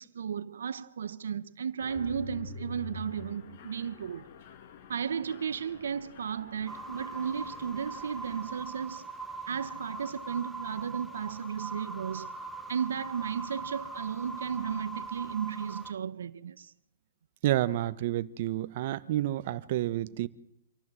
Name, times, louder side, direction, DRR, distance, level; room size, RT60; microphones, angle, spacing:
voice 1, 0.0-4.3 4.9-9.1 9.5-12.3 12.7-16.7, right 7 dB, 85° right, 0.8 m, -34 dB
Mechanisms, 1.8-8.5, left 4 dB, 50° left, 2.1 m, -47 dB
sound 1, 6.7-15.9, right 3 dB, ahead, 1.3 m, -41 dB
voice 2, 17.4-20.3, right 14 dB, 50° right, 0.9 m, -29 dB
25.5 x 14.5 x 7.6 m
hypercardioid pair, 145°, 0 cm